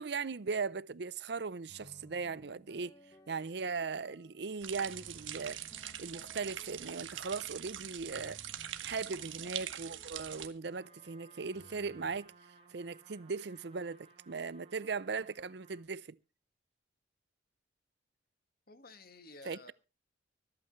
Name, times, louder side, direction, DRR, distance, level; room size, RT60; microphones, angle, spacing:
voice 1, 0.0-2.9 3.3-5.6 6.0-8.4 8.8-12.3 12.7-16.2 19.5-19.6, right 4 dB, 60° right, 0.6 m, -38 dB
sound 1, 1.7-4.3 4.8-7.5 8.1-12.2, left 1 dB, 20° left, 1.3 m, -61 dB
sound 2, 4.6-10.5, right 11 dB, 90° right, 1.4 m, -43 dB
Trumpet, 10.6-15.9, right 3 dB, 30° right, 4.2 m, -61 dB
voice 2, 18.7-19.7, left 3 dB, 50° left, 1.8 m, -53 dB
25.0 x 8.8 x 3.2 m
head